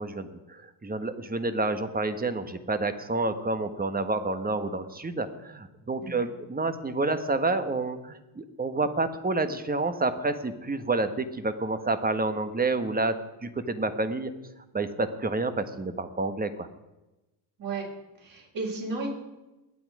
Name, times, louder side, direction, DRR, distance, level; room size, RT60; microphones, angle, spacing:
voice 1, 0.0-14.3 14.7-16.7, right 3 dB, 20° right, 10 dB, 1.4 m, -29 dB
voice 2, 18.2-19.1, right 3 dB, 45° right, -2 dB, 6.7 m, -33 dB
22.0 x 9.0 x 4.9 m, 1.0 s
cardioid pair, 100°, 49 cm